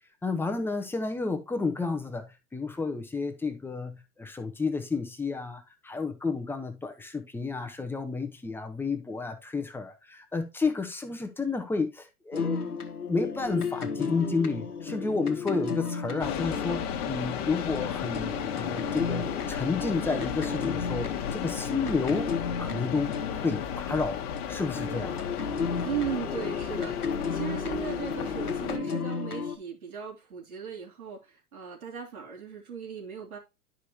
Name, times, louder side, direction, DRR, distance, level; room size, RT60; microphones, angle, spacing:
voice 1, 0.2-2.3 2.5-12.7 13.1-22.3 22.6-23.2 23.4-25.3, left 4 dB, 5° left, 0.8 m, -31 dB
sound 1, 12.3-24.4 24.8-29.6, left 5 dB, 80° left, 1.1 m, -34 dB
sound 2, 16.2-28.8, left 8 dB, 40° left, 1.3 m, -34 dB
voice 2, 25.8-33.4, right 7 dB, 70° right, 2.9 m, -37 dB
11.5 x 5.0 x 2.8 m
figure-of-eight pair, 100°, 45 cm